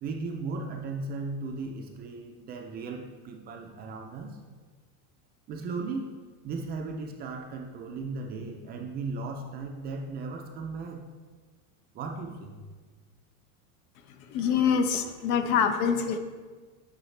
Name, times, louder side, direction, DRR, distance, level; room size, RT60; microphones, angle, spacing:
voice 1, 0.0-4.4 5.5-6.1 6.4-11.1 11.9-12.6, right 3 dB, 25° right, 2 dB, 0.3 m, -36 dB
voice 2, 14.3-16.2, left 7 dB, 85° left, 7 dB, 0.9 m, -25 dB
9.0 x 5.5 x 3.2 m, 1.4 s
supercardioid pair, 155°, 43 cm